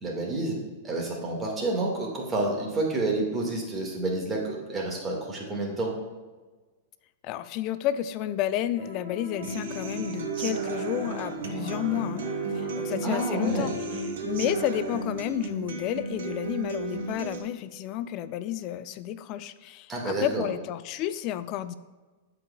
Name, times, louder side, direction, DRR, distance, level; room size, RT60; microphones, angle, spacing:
voice 1, 0.0-5.9 13.0-13.7 19.9-20.4, right 2 dB, 20° right, -1 dB, 1.8 m, -29 dB
voice 2, 7.2-12.3 12.5-13.7 14.2-21.7, left 12 dB, 45° left, 13 dB, 0.5 m, -31 dB
sound 1, 8.8-14.1, left 6 dB, 55° right, 1.5 m, -40 dB
Human voice / Acoustic guitar, 9.4-17.4, right 5 dB, 75° right, 1.1 m, -34 dB
13.5 x 4.9 x 2.3 m, 1.3 s
hypercardioid pair, 120°, 0 cm